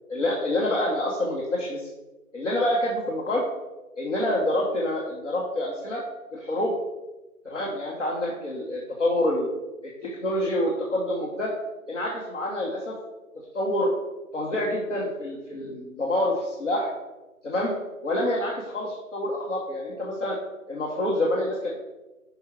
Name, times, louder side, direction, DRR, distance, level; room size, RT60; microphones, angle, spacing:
voice 1, 0.1-1.8 2.3-3.4 4.0-6.0 6.3-6.7 7.4-9.5 10.0-11.5 11.9-12.9 13.5-13.9 14.3-16.9 17.4-17.7 18.0-20.3 20.7-21.8, left 1 dB, 55° left, -3 dB, 1.2 m, -27 dB
5.3 x 4.9 x 4.5 m, 1.1 s
hypercardioid pair, 180°, 45 cm